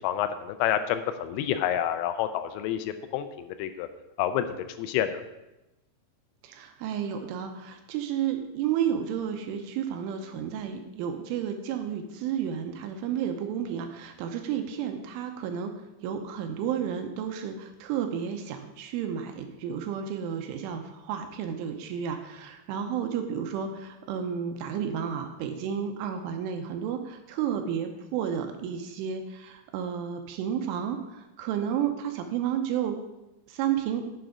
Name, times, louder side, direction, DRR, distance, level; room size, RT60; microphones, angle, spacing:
voice 1, 0.0-3.9 4.2-4.5 4.8-5.2, left 10 dB, 85° left, 10 dB, 3.2 m, -28 dB
voice 2, 6.4-15.7 16.0-33.0 33.5-34.0, right 8 dB, 80° right, 5 dB, 3.1 m, -31 dB
9.4 x 7.5 x 5.0 m, 0.98 s
omnidirectional pair, 5.9 m